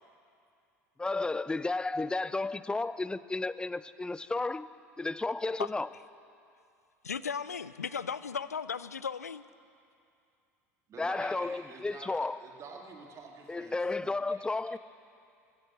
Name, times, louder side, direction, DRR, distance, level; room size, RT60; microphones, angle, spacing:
voice 1, 1.0-5.9 11.0-12.4 13.5-14.8, left 3 dB, 10° left, 0.4 m, -33 dB
voice 2, 7.0-9.4, left 6 dB, 90° left, 0.4 m, -36 dB
voice 3, 10.9-14.8, right 4 dB, 40° right, 2.1 m, -49 dB
15.5 x 12.0 x 7.8 m
hypercardioid pair, 70°, 8 cm